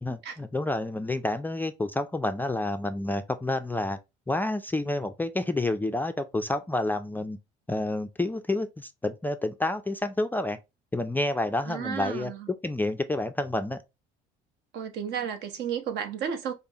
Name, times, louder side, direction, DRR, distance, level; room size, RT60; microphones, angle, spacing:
voice 1, 0.0-4.0 4.3-7.4 7.7-10.6 10.9-12.3 12.6-13.8, left 2 dB, 10° left, 0.3 m, -29 dB
voice 2, 11.7-12.5 14.7-16.5, right 8 dB, 65° right, 0.9 m, -33 dB
5.1 x 2.0 x 2.8 m
supercardioid pair, 90°, 19 cm